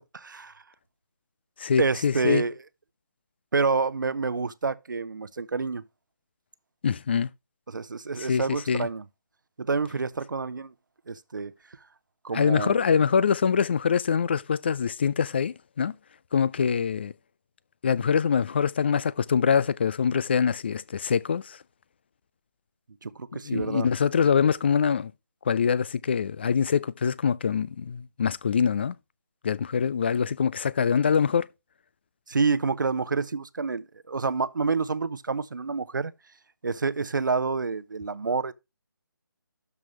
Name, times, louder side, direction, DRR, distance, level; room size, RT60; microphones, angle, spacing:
voice 1, 0.1-0.5 1.8-2.5 3.5-5.8 7.7-9.0 9.6-10.7 11.1-11.5 12.2-12.8 23.0-23.9 32.3-36.1 36.6-38.5, right 4 dB, 65° right, 0.8 m, -28 dB
voice 2, 1.6-2.4 6.8-7.3 8.2-8.9 12.3-15.9 16.3-17.1 17.8-21.6 23.4-25.1 25.5-28.9 29.4-31.5, left 6 dB, 30° left, 0.4 m, -24 dB
12.5 x 4.8 x 3.1 m
figure-of-eight pair, 150°, 11 cm